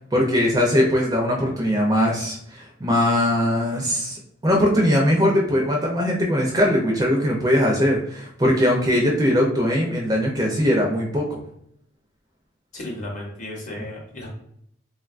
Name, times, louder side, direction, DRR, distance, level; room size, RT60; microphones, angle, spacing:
voice 1, 0.1-11.4, equal, 20° right, -1 dB, 0.4 m, -20 dB
voice 2, 12.7-14.3, left 1 dB, 40° left, -2 dB, 0.8 m, -34 dB
3.5 x 2.2 x 2.4 m, 0.71 s
head